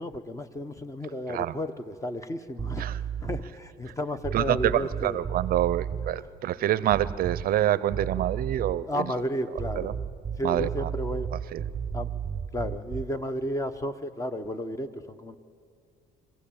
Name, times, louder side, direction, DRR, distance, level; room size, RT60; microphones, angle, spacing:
voice 1, 0.0-2.9 3.2-5.2 8.8-10.0 10.4-11.3 11.9-12.1 12.5-15.4, equal, 20° left, 11 dB, 1.0 m, -32 dB
sound 1, 2.6-3.5 4.2-6.1 6.9-7.6 7.9-8.9 9.5-13.2, right 7 dB, 25° right, 0.9 m, -33 dB
voice 2, 4.3-9.1 9.8-9.9 10.4-10.9 11.5-11.6, right 12 dB, 60° right, 17 dB, 0.6 m, -27 dB
24.0 x 15.5 x 8.6 m, 2.4 s
cardioid pair, 110°, 17 cm